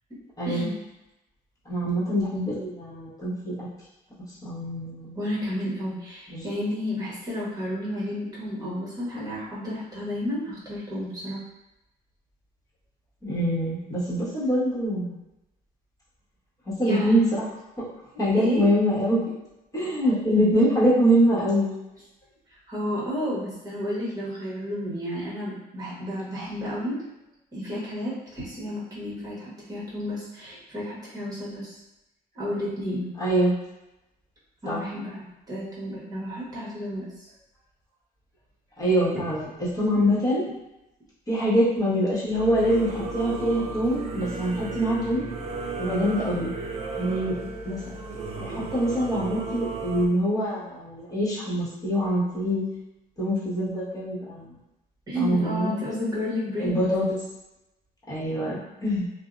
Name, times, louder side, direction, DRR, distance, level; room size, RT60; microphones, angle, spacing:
voice 1, 0.4-0.7 1.6-3.7 4.4-5.2 6.3-6.4 13.2-15.2 16.8-17.4 17.8-17.9 18.2-19.2 19.7-21.7 33.2-33.5 34.6-34.8 38.8-39.5 39.7-40.4 41.3-45.2 45.8-46.5 47.0-47.3 47.6-47.8 48.4-52.6 53.2-54.6 55.1-55.7 56.6-57.2 58.1-59.1, equal, 20° left, -9 dB, 1.2 m, -24 dB
voice 2, 5.1-11.4 16.8-17.4 18.4-18.6 22.7-27.0 27.5-31.7 32.3-33.1 34.6-37.3 39.1-39.2 55.1-56.8, left 1 dB, 20° right, -7 dB, 1.1 m, -31 dB
Singing / Musical instrument, 42.3-50.1, right 3 dB, 40° right, 0.4 m, -34 dB
2.6 x 2.1 x 2.5 m, 0.94 s
cardioid pair, 110°, 17 cm